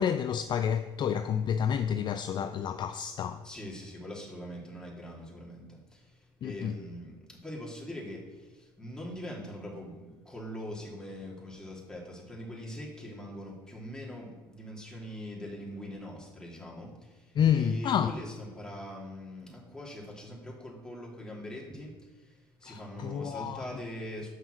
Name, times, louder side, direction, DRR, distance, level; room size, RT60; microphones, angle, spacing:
voice 1, 0.0-3.5 6.4-6.7 17.3-18.1 22.6-23.6, left 8 dB, 40° left, 0.4 m, -29 dB
voice 2, 3.4-24.3, equal, 5° left, 2.9 m, -42 dB
6.5 x 5.6 x 6.4 m
hypercardioid pair, 65°, 12 cm